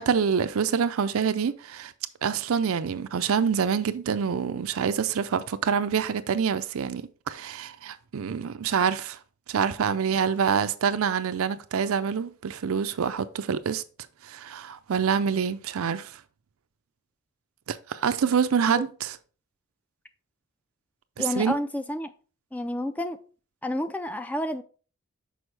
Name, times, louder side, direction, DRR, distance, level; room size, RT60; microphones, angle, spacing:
voice 1, 0.0-1.9 2.2-9.2 9.5-13.8 14.2-16.1 17.7-19.2 21.3-21.5, right 6 dB, 75° right, 0.5 m, -26 dB
voice 2, 21.2-22.1 22.5-23.2 23.6-24.6, left 1 dB, 5° left, 0.3 m, -30 dB
6.2 x 4.7 x 3.3 m
head